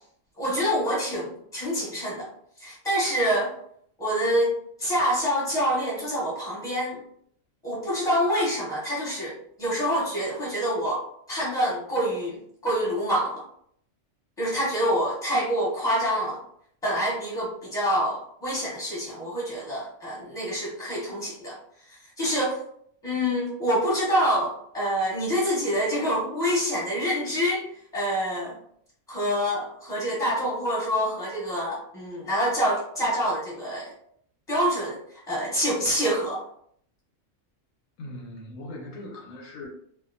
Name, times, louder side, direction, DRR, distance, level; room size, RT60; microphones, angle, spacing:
voice 1, 0.4-2.3 2.6-3.5 4.0-4.5 4.8-7.0 7.6-13.4 14.4-16.4 16.8-21.6 22.2-22.6 23.0-27.6 27.9-28.6 29.1-33.9 34.5-35.0 35.3-36.4, equal, 5° left, -7 dB, 1.1 m, -26 dB
voice 2, 38.0-39.7, left 1 dB, 80° left, 0 dB, 1.0 m, -39 dB
2.6 x 2.2 x 2.5 m, 0.66 s
omnidirectional pair, 1.3 m